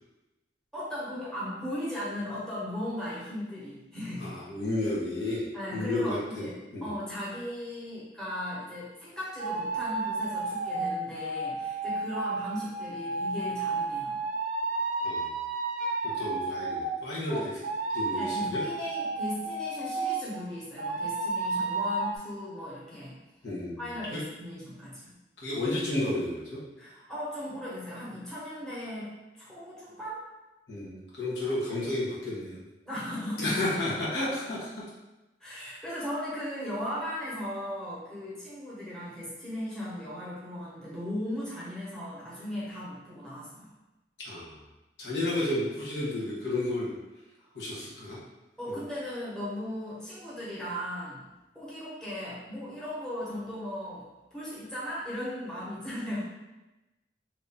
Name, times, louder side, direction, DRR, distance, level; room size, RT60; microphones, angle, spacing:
voice 1, 0.7-4.4 5.5-14.2 17.3-17.5 18.1-23.2 23.8-25.1 26.8-30.3 32.9-33.8 34.6-34.7 35.4-43.7 47.4-47.5 48.6-51.2 51.5-56.2, left 1 dB, 5° left, -9 dB, 1.1 m, -37 dB
voice 2, 4.2-5.4 5.7-6.5 6.7-6.9 15.0-15.2 16.2-17.4 17.9-18.6 23.4-23.8 24.1-24.2 25.4-26.6 30.7-32.6 33.4-34.7 44.2-44.5 45.0-46.9 47.5-48.2 48.7-48.8, left 1 dB, 85° left, -7 dB, 1.2 m, -31 dB
sound 1, 9.4-17.0 17.6-20.3 20.8-22.2, right 3 dB, 50° right, 0.3 m, -32 dB
3.0 x 2.6 x 3.6 m, 1.0 s
head